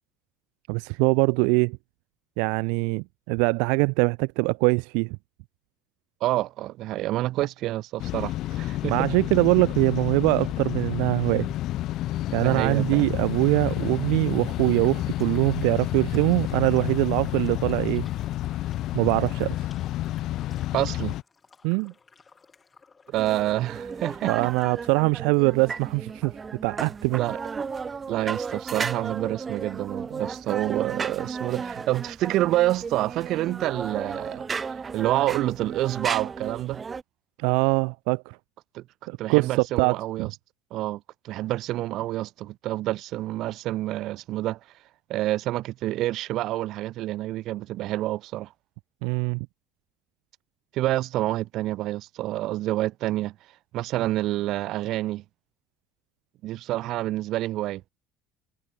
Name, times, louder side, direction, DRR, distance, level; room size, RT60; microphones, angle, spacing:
voice 1, 0.7-1.8 2.4-5.2 8.9-11.5 12.3-18.1 18.9-19.6 21.6-21.9 24.3-26.4 26.6-27.3 37.4-38.4 39.1-40.3 49.0-49.5, right 38 dB, 90° right, 0.5 m, -23 dB
voice 2, 6.2-9.1 12.4-13.1 20.7-21.1 23.1-24.5 27.2-27.4 28.1-34.4 34.9-36.8 38.7-38.8 39.2-40.3 40.7-44.6 45.1-48.5 50.7-53.3 53.7-55.2 56.4-57.8, right 15 dB, 55° right, 1.8 m, -28 dB
sound 1, 8.0-21.2, left 15 dB, 55° left, 0.3 m, -30 dB
sound 2, 14.7-25.1, left 5 dB, 20° left, 5.4 m, -55 dB
sound 3, 23.1-37.0, right 5 dB, 20° right, 0.4 m, -34 dB
cardioid pair, 150°, 0 cm